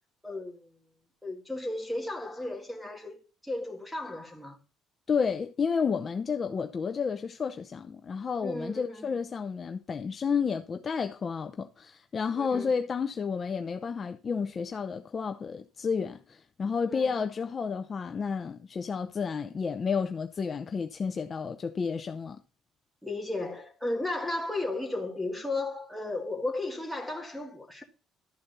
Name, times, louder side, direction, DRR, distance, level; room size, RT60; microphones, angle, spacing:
voice 1, 0.2-0.8 1.2-4.6 8.4-9.1 12.4-12.7 16.9-17.1 23.0-27.8, left 2 dB, ahead, 1.8 m, -34 dB
voice 2, 5.1-22.4, left 6 dB, 30° left, 0.5 m, -31 dB
12.5 x 4.2 x 6.7 m
cardioid pair, 145°, 0 cm